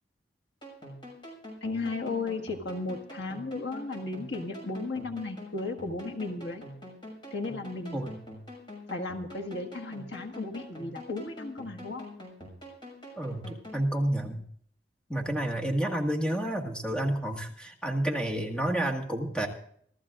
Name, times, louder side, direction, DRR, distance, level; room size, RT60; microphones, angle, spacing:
sound 1, 0.6-13.8, equal, 30° left, 6.0 m, -46 dB
voice 1, 1.6-6.6 7.3-8.0 8.9-12.1, left 3 dB, 80° left, 2 dB, 1.6 m, -35 dB
voice 2, 13.2-14.4 15.1-19.5, right 1 dB, 5° left, 1 dB, 1.8 m, -30 dB
26.5 x 14.0 x 2.5 m, 0.63 s
head